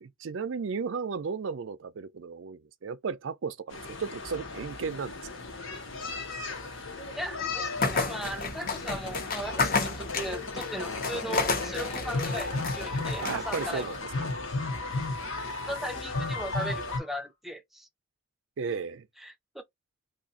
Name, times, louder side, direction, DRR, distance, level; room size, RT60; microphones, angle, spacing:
voice 1, 0.0-5.1 13.2-14.3 18.6-19.1, right 5 dB, 75° right, 0.4 m, -34 dB
sound 1, 3.7-17.0, left 3 dB, 80° left, 1.1 m, -35 dB
voice 2, 7.1-13.9 15.7-17.9 18.7-18.8 19.2-19.6, right 1 dB, ahead, 0.5 m, -38 dB
sound 2, 7.8-14.0, left 4 dB, 45° left, 0.8 m, -32 dB
sound 3, 10.8-17.3, left 2 dB, 30° left, 1.2 m, -48 dB
2.7 x 2.5 x 3.9 m
head